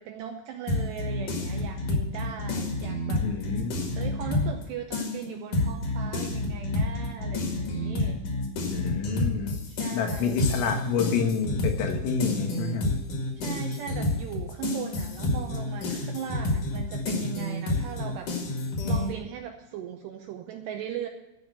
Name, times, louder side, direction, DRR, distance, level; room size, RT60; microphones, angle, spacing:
voice 1, 0.0-3.7 4.0-8.2 9.4-10.4 13.4-21.1, right 9 dB, 90° right, 4 dB, 2.4 m, -39 dB
sound 1, 0.7-4.6 4.9-19.1, left 2 dB, 50° left, 2.7 m, -29 dB
voice 2, 3.2-3.8 8.7-9.6 9.9-12.9, left 6 dB, 90° left, 3 dB, 4.2 m, -28 dB
15.0 x 5.5 x 7.5 m, 1.0 s
omnidirectional pair, 5.7 m